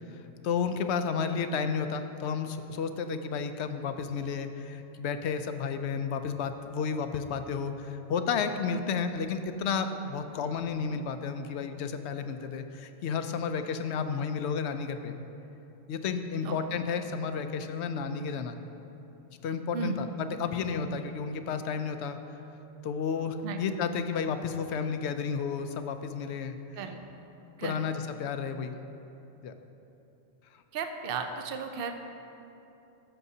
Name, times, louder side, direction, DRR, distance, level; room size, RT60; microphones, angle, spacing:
voice 1, 0.4-15.1 15.9-18.6 19.4-22.2 22.8-26.6 27.6-28.7 29.4-29.5, left 6 dB, 85° left, 8 dB, 0.8 m, -32 dB
voice 2, 19.7-20.0 23.4-23.6 26.8-27.0 27.6-27.8 30.7-31.9, right 5 dB, 60° right, 6 dB, 0.8 m, -34 dB
14.5 x 6.9 x 2.7 m, 3.0 s
omnidirectional pair, 1.1 m